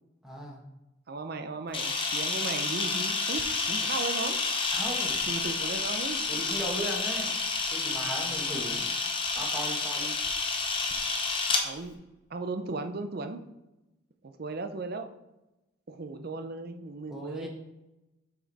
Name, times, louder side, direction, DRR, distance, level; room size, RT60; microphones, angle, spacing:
voice 1, 0.2-0.6 4.7-5.2 6.3-7.3 7.7-8.9 9.3-10.1 17.1-17.5, right 1 dB, ahead, -2 dB, 1.3 m, -37 dB
voice 2, 1.1-4.4 5.3-6.3 11.6-12.0 12.3-13.4 14.2-15.1 15.9-17.5, right 3 dB, 50° right, 7 dB, 0.5 m, -36 dB
Camera, 1.7-11.6, left 4 dB, 25° left, 0.8 m, -30 dB
6.2 x 5.2 x 4.0 m, 0.98 s
head